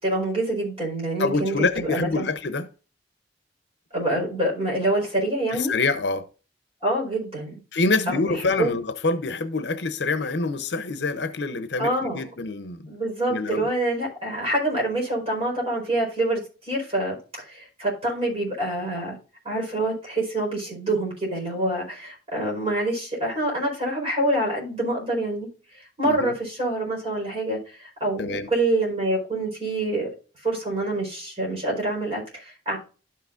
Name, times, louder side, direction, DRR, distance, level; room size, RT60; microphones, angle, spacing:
voice 1, 0.0-2.3 3.9-5.7 6.8-7.5 8.1-8.7 11.8-12.2 12.9-16.4 16.7-19.2 19.4-25.5 26.0-30.1 30.4-32.8, right 1 dB, 35° right, 4.5 m, -26 dB
voice 2, 1.2-2.7 5.5-6.3 7.7-12.9 13.3-13.7 26.0-26.3 28.2-28.5, left 3 dB, 70° left, 0.7 m, -26 dB
12.5 x 5.9 x 2.5 m
head